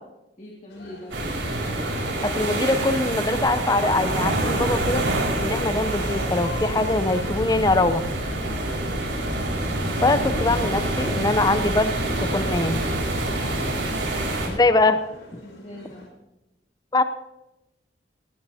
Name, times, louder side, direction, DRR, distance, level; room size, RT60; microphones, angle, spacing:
voice 1, 0.4-1.3 8.4-8.7 13.3-13.6 15.4-16.1, left 1 dB, 35° left, -3 dB, 2.1 m, -41 dB
sound 1, 0.7-16.1, left 1 dB, 85° left, 4.5 m, -44 dB
sound 2, 1.1-14.5, right 1 dB, 85° right, 4.9 m, -26 dB
voice 2, 2.2-5.0 5.4-8.0 10.0-11.9 12.2-12.8 14.5-15.0 15.3-15.4 16.9-17.0, left 2 dB, 20° left, 10 dB, 0.6 m, -22 dB
18.5 x 17.0 x 2.8 m, 0.96 s
head